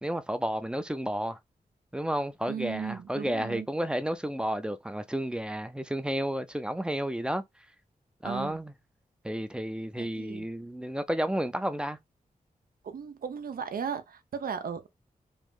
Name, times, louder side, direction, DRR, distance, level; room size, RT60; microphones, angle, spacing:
voice 1, 0.0-1.4 1.9-7.4 8.2-8.7 9.2-12.0, right 1 dB, 5° right, 0.4 m, -31 dB
voice 2, 2.5-3.7 8.2-8.6 10.0-10.5 12.8-14.9, right 7 dB, 80° right, 0.6 m, -36 dB
3.1 x 2.6 x 3.6 m
wide cardioid pair, 95°, 15 cm